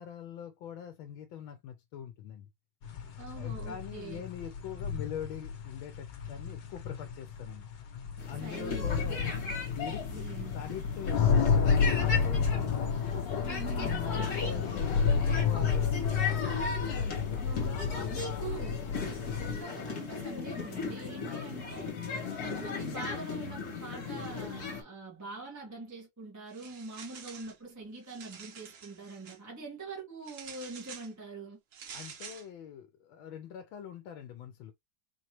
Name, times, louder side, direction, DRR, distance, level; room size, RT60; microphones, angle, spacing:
voice 1, 0.0-2.5 3.4-7.7 8.3-9.3 9.7-10.3 10.5-12.8 13.8-16.7 17.7-18.6 19.3-19.7 21.2-21.7 31.9-34.7, left 8 dB, 85° left, 1.5 m, -43 dB
sound 1, 2.8-19.6, left 6 dB, 70° left, 1.5 m, -31 dB
voice 2, 3.2-4.2 8.4-8.9 10.1-10.6 13.4-14.0 17.4-18.8 19.4-21.9 22.4-31.6, right 3 dB, 10° right, 1.3 m, -44 dB
sound 2, 8.2-24.8, left 4 dB, 50° left, 2.0 m, -38 dB
sound 3, 26.5-27.6 28.0-29.4 30.2-31.1 31.7-32.5, right 6 dB, 85° right, 0.5 m, -48 dB
4.6 x 3.0 x 3.0 m
omnidirectional pair, 2.1 m